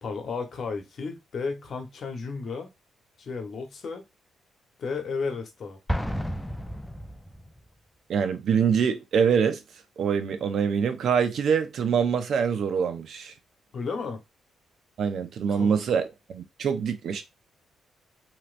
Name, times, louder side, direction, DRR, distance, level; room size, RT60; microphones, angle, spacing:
voice 1, 0.0-2.7 3.2-4.0 4.8-5.8 13.7-14.2 15.5-15.7, left 4 dB, 55° left, 1.0 m, -33 dB
Explosion, 5.9-7.7, equal, 5° left, 0.4 m, -31 dB
voice 2, 8.1-9.6 10.0-13.3 15.0-17.2, right 7 dB, 65° right, 0.6 m, -25 dB
3.1 x 3.0 x 2.5 m
cardioid pair, 90°, 0 cm